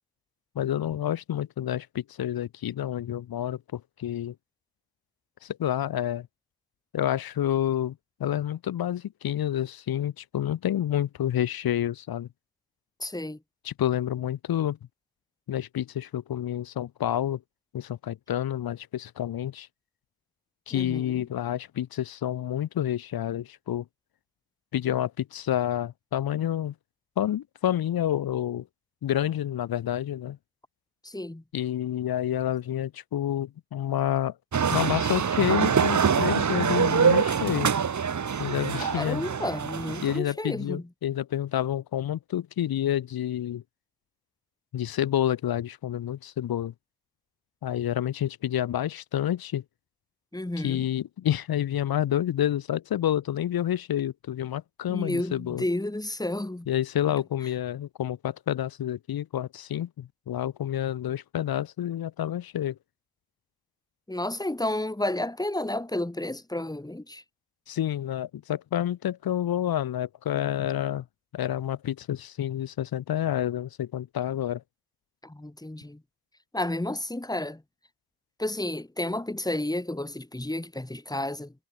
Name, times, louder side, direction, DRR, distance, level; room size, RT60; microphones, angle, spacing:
voice 1, 0.5-4.3 5.4-6.3 6.9-12.3 13.6-14.8 15.5-17.4 17.7-19.7 20.7-23.8 24.7-26.7 27.2-28.7 29.0-30.4 31.5-34.4 34.7-37.7 38.4-39.2 40.0-43.6 44.7-46.7 47.6-49.6 50.6-55.6 56.7-62.8 67.7-71.0 71.3-74.6, left 11 dB, 90° left, 1.2 m, -29 dB
voice 2, 13.0-13.4 20.7-21.3 31.0-31.4 38.8-40.9 50.3-50.9 54.9-56.7 64.1-67.2 75.2-76.0 76.5-77.6 78.4-81.5, left 1 dB, 10° left, 2.8 m, -31 dB
sound 1, 34.5-40.2, right 7 dB, 55° right, 1.7 m, -25 dB
cardioid pair, 70°, 35 cm